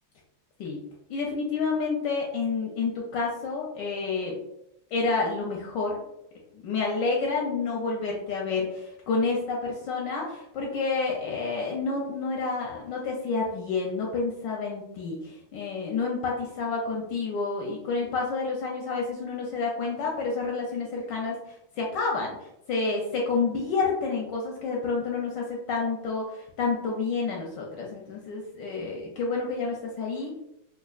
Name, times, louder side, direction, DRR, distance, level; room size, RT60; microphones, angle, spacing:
voice 1, 1.1-4.4 4.9-6.0 6.5-21.4 21.8-22.3 22.7-30.4, left 4 dB, 75° left, -1 dB, 1.1 m, -29 dB
5.1 x 2.3 x 2.3 m, 0.82 s
omnidirectional pair, 2.4 m